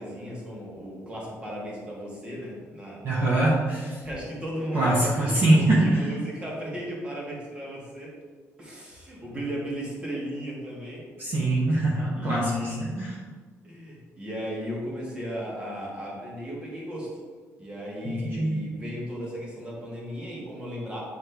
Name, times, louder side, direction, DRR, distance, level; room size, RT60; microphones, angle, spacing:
voice 1, 0.0-3.3 4.0-8.1 8.6-11.0 12.1-13.1 13.6-17.1 17.6-21.0, equal, 20° right, -4 dB, 1.5 m, -35 dB
voice 2, 3.0-4.0 4.7-6.1 11.2-13.1 18.0-18.6, right 1 dB, 40° right, -5 dB, 0.9 m, -23 dB
9.3 x 3.2 x 3.3 m, 1.5 s
cardioid pair, 180°, 6 cm